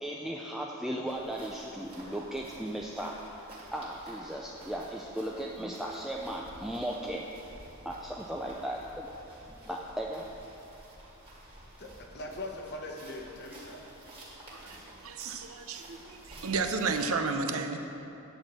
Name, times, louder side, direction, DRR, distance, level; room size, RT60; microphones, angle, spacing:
voice 1, 0.0-3.3 3.7-7.3 7.8-9.1 9.5-10.3 14.6-14.7, right 1 dB, ahead, -2 dB, 0.3 m, -36 dB
sound 1, 1.1-17.1, right 1 dB, 25° right, 2.3 m, -51 dB
voice 2, 11.8-13.8, left 1 dB, 50° left, 1 dB, 1.0 m, -41 dB
voice 3, 14.5-17.8, right 4 dB, 70° right, 6 dB, 0.6 m, -32 dB
10.5 x 4.4 x 7.4 m, 3.0 s
head